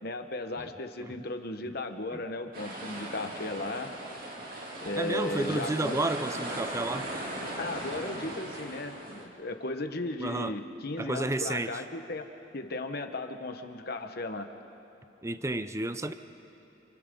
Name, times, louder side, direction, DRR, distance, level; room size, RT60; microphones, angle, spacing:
voice 1, 0.0-3.9 4.8-6.0 7.6-12.3 12.5-14.5, left 2 dB, 55° left, 6 dB, 1.2 m, -36 dB
sound 1, 2.5-9.2, right 1 dB, 50° right, 2.9 m, -38 dB
voice 2, 5.0-7.1 10.2-10.5 11.0-11.8 15.2-16.1, right 2 dB, 15° right, 10 dB, 0.6 m, -31 dB
30.0 x 28.5 x 3.9 m, 3.0 s
head